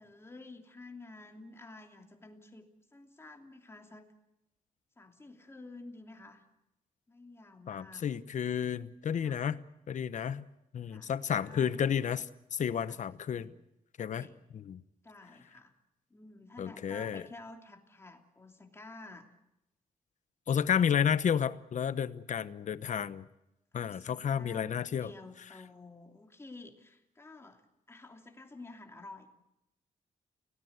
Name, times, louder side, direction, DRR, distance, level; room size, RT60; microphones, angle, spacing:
voice 1, 0.0-4.1 5.0-6.4 7.1-8.0 9.2-9.4 10.9-11.8 12.9-13.6 14.0-14.4 15.0-15.7 16.1-19.3 23.7-24.7 25.0-27.6 27.9-29.3, left 2 dB, 15° left, 4 dB, 3.0 m, -51 dB
voice 2, 7.7-9.6 9.9-10.4 10.7-13.5 14.0-14.3 14.5-14.8 16.6-17.2 20.5-23.3 23.7-25.1, left 8 dB, 60° left, 14 dB, 1.0 m, -31 dB
29.5 x 18.5 x 8.2 m, 0.88 s
wide cardioid pair, 145°, 14 cm